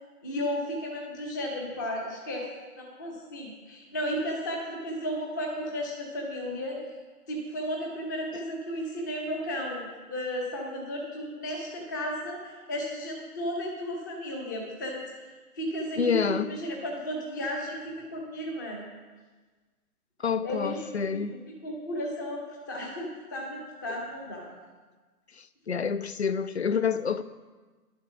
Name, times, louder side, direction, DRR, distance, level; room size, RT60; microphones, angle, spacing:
voice 1, 0.2-2.5 2.8-6.8 7.3-15.3 15.5-18.8 20.4-20.8 21.1-22.4 22.7-24.5, equal, 15° left, 0.9 m, -34 dB
voice 2, 16.0-16.5 20.2-21.4 25.4-27.2, left 6 dB, 45° left, 0.5 m, -28 dB
11.0 x 7.2 x 6.0 m
figure-of-eight pair, 150°, 46 cm